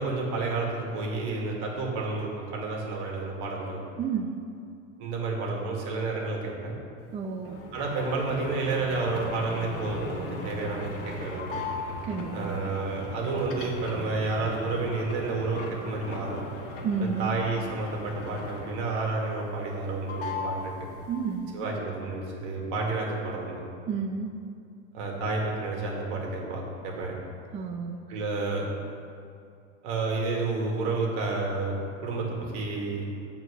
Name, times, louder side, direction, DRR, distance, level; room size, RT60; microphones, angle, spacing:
voice 1, 0.0-3.8 5.0-6.8 7.7-11.5 12.3-16.4 17.0-20.9 21.5-23.6 24.9-27.1 28.1-28.7 29.8-31.7 32.0-33.0, right 3 dB, 65° right, -1 dB, 2.2 m, -30 dB
voice 2, 4.0-4.3 7.1-7.6 12.0-12.7 16.8-17.3 21.1-21.5 23.9-24.3 27.5-28.2, right 5 dB, 20° right, 5 dB, 0.4 m, -31 dB
sound 1, 7.4-18.9 19.3-19.8 20.1-21.4, left 2 dB, 40° left, 1.7 m, -38 dB
8.1 x 4.5 x 6.5 m, 2.4 s
hypercardioid pair, 105°, 36 cm